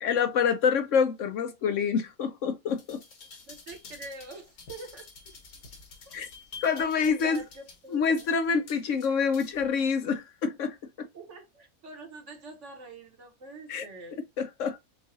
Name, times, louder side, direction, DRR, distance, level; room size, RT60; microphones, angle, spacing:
voice 1, 0.0-3.0 6.1-6.3 6.6-7.4 7.9-11.1 13.7-13.8 14.4-14.8, left 6 dB, 65° left, 1.0 m, -27 dB
sound 1, 2.7-9.7 10.1-10.2, left 4 dB, 80° left, 1.8 m, -49 dB
voice 2, 3.5-5.1 6.1-6.2 6.7-8.3 11.1-14.3, right 3 dB, 55° right, 1.4 m, -45 dB
6.8 x 2.4 x 2.6 m
omnidirectional pair, 1.5 m